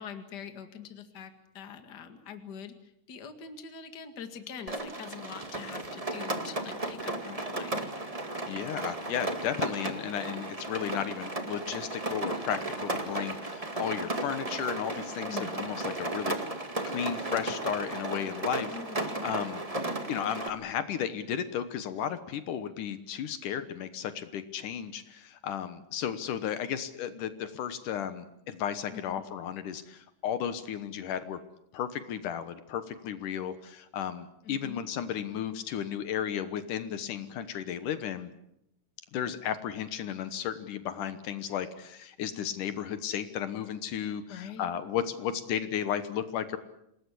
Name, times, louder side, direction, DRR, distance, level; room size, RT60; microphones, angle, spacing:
voice 1, 0.0-2.8 3.1-7.9 15.3-15.7 18.6-19.2 28.9-29.2 34.4-34.9 44.3-44.7, left 7 dB, 35° left, 8 dB, 2.2 m, -44 dB
Rain, 4.7-20.5, right 2 dB, 15° right, 1.4 m, -35 dB
voice 2, 8.5-16.4 16.9-19.6 20.1-31.4 31.7-38.3 39.1-46.6, left 9 dB, 75° left, 11 dB, 2.7 m, -34 dB
27.5 x 19.5 x 8.4 m, 0.80 s
omnidirectional pair, 3.8 m